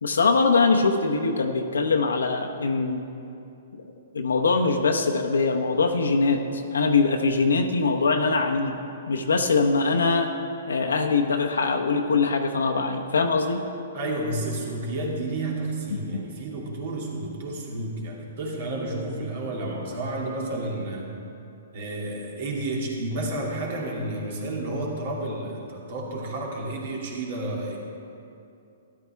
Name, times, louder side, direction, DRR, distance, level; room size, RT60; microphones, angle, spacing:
voice 1, 0.0-3.1 3.7-3.8 4.1-8.8 9.1-10.3 10.7-13.6 16.1-16.2, left 4 dB, 80° left, 3 dB, 0.8 m, -22 dB
voice 2, 13.9-21.1 21.7-27.8, right 2 dB, 55° right, -2 dB, 2.5 m, -31 dB
13.0 x 11.5 x 3.4 m, 2.7 s
hypercardioid pair, 125°, 0 cm